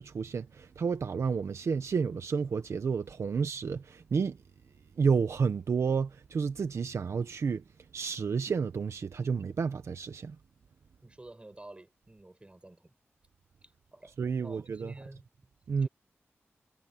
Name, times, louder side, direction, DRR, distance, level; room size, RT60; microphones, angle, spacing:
voice 1, 0.0-4.4 5.0-7.6 7.9-10.4 14.2-14.9 15.7-15.9, right 5 dB, 80° right, 1.3 m, -30 dB
voice 2, 11.0-12.9 13.6-15.3 15.8-15.9, right 2 dB, 25° right, 6.1 m, -50 dB
wide cardioid pair, 80°, 5 cm